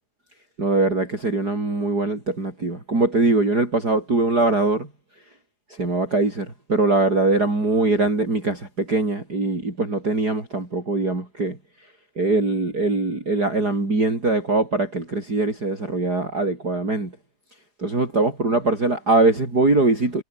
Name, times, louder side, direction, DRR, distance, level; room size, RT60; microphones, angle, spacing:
voice 1, 0.6-4.9 5.7-11.6 12.2-17.1 17.8-20.2, right 2 dB, 25° right, 6.3 m, -22 dB
omnidirectional pair, 4.0 m